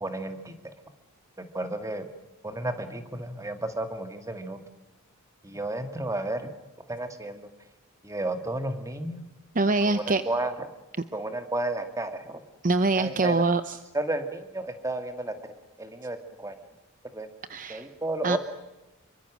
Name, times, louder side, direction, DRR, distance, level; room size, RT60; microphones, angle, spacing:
voice 1, 0.0-0.6 1.4-2.0 2.4-4.6 5.4-6.5 6.9-7.5 8.0-9.2 9.8-10.5 11.1-12.4 13.0-13.4 13.9-15.3 15.8-16.5 17.1-17.3 17.7-18.4, right 2 dB, 15° right, 7 dB, 2.1 m, -32 dB
voice 2, 9.5-10.2 12.6-13.8 17.5-17.9 18.2-18.4, right 3 dB, 40° right, 11 dB, 0.8 m, -24 dB
26.5 x 24.0 x 6.3 m, 1.0 s
head